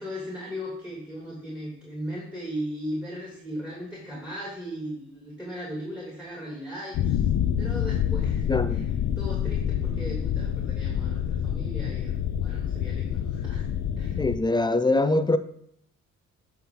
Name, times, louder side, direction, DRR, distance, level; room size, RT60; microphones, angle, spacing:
voice 1, 0.0-7.2 7.6-8.9 9.2-13.7 14.0-14.2, equal, 5° right, 2.8 m, -37 dB
sound 1, 6.9-14.4, left 9 dB, 65° left, 0.6 m, -27 dB
voice 2, 8.5-8.9 14.2-15.4, left 2 dB, 15° left, 0.5 m, -23 dB
9.0 x 5.8 x 3.8 m
cardioid pair, 90°, 30 cm